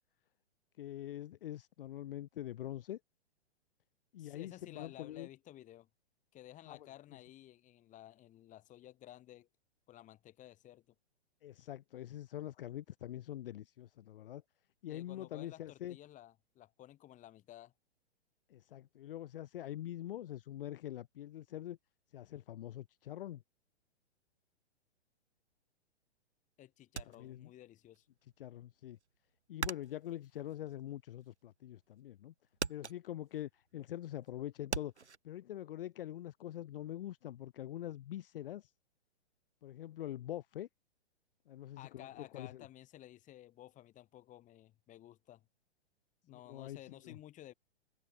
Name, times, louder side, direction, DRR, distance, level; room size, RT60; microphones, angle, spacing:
voice 1, 0.8-3.0 4.1-5.3 6.7-6.9 11.4-14.4 14.8-16.0 18.5-21.8 22.1-23.4 27.2-27.5 28.4-29.0 29.5-32.3 32.7-38.7 39.6-40.7 41.5-42.7 46.3-47.2, left 12 dB, 55° left, 0.9 m, -44 dB
voice 2, 4.2-5.9 6.3-9.5 9.9-10.9 14.9-17.7 26.6-28.1 41.8-45.5 46.2-47.5, left 13 dB, 25° left, 2.3 m, -54 dB
sound 1, 27.0-28.0 28.3-31.5 31.9-32.3 32.5-35.2, right 5 dB, 90° right, 1.6 m, -42 dB
figure-of-eight pair, 120°, 33 cm